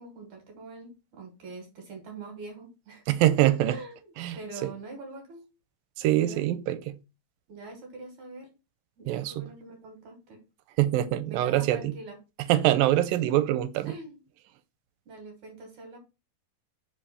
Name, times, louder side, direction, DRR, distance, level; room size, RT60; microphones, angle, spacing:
voice 1, 0.0-3.0 3.4-5.5 6.1-6.5 7.5-8.5 9.0-10.4 11.3-12.2 13.9-14.2 15.1-16.0, right 3 dB, 65° right, 2.3 m, -44 dB
voice 2, 3.1-3.8 4.2-4.4 4.6-4.7 6.0-7.0 9.1-9.5 10.8-11.9 12.5-13.9, right 13 dB, 85° right, 2.3 m, -24 dB
5.1 x 3.3 x 5.5 m
omnidirectional pair, 4.1 m